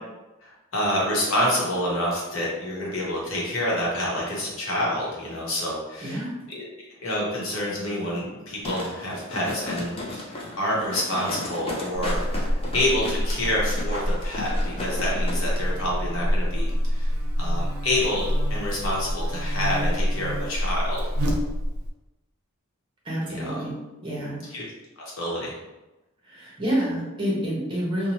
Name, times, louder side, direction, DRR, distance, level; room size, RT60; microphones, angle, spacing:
voice 1, 0.4-6.2 6.5-6.6 7.0-17.1 17.4-21.1 23.3-23.6 24.5-24.6 25.2-25.5, left 1 dB, 65° left, -4 dB, 0.9 m, -28 dB
voice 2, 6.0-6.3 23.0-24.4 26.3-28.1, equal, 25° right, -5 dB, 0.8 m, -28 dB
sound 1, 8.6-15.4 15.7-15.8, left 2 dB, 25° left, 0.4 m, -34 dB
Buzz, 11.9-21.9, equal, 80° right, 0.5 m, -26 dB
2.7 x 2.1 x 2.9 m, 1.1 s
head